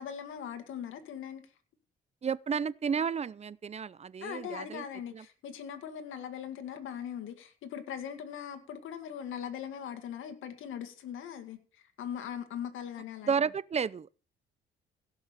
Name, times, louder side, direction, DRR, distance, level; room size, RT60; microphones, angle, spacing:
voice 1, 0.0-1.4 4.2-13.3, left 8 dB, 80° left, 2.0 m, -40 dB
voice 2, 2.2-4.8 5.1-5.2 13.2-14.1, right 6 dB, 35° right, 0.6 m, -32 dB
16.5 x 6.1 x 6.8 m
cardioid pair, 90°, 20 cm